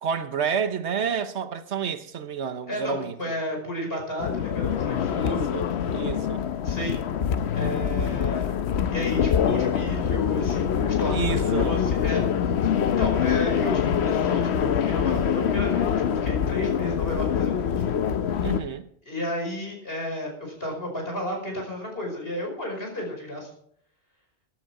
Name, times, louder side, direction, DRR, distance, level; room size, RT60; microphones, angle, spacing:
voice 1, 0.0-3.3 5.1-5.6 5.9-6.4 11.1-11.8 18.4-18.9, right 7 dB, 80° right, 1.2 m, -30 dB
voice 2, 2.7-5.5 6.6-7.0 7.5-8.6 8.9-12.2 12.6-17.9 19.0-23.5, left 1 dB, 60° left, 5.4 m, -33 dB
sound 1, 4.2-18.6, left 8 dB, 75° left, 1.0 m, -25 dB
14.5 x 11.5 x 4.9 m
omnidirectional pair, 1.1 m